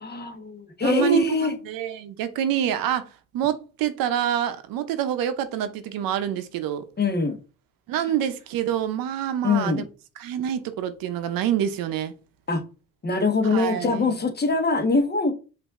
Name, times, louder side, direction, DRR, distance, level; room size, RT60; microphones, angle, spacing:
voice 1, 0.0-1.5 7.0-7.4 9.4-9.8 12.5-12.6 13.0-15.3, left 3 dB, 30° left, 1.1 m, -23 dB
voice 2, 0.8-6.8 7.9-9.8 10.2-12.1 13.4-14.2, right 10 dB, 85° right, 0.7 m, -27 dB
5.2 x 2.7 x 3.6 m
cardioid pair, 90°, 34 cm